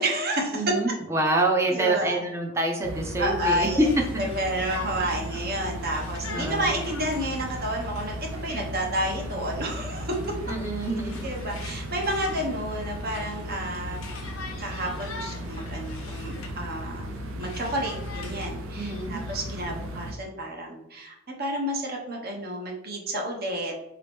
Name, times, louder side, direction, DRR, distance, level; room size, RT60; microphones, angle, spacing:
voice 1, 0.0-0.6 1.7-2.2 3.2-3.9 4.2-10.1 11.2-14.0 14.6-23.7, right 1 dB, 45° right, 1 dB, 0.9 m, -30 dB
voice 2, 0.5-3.9 6.3-6.7 10.5-11.3 18.7-19.2, right 2 dB, 15° right, 1 dB, 0.6 m, -26 dB
sound 1, 2.8-20.1, equal, 75° right, 0.5 m, -36 dB
Conversation, 3.8-16.6 17.0-19.6, left 4 dB, 90° left, 0.7 m, -44 dB
3.9 x 2.9 x 3.4 m, 0.90 s
head